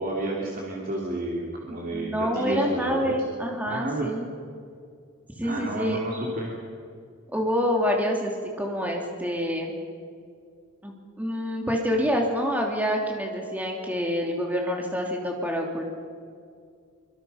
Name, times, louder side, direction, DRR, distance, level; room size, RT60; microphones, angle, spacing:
voice 1, 0.0-3.1 3.6-4.1 5.4-6.6, right 2 dB, 40° right, -3 dB, 3.2 m, -31 dB
voice 2, 1.7-4.3 5.4-6.0 7.3-9.7 10.8-15.9, equal, 5° right, 0 dB, 2.9 m, -27 dB
25.0 x 25.0 x 5.8 m, 2.2 s
head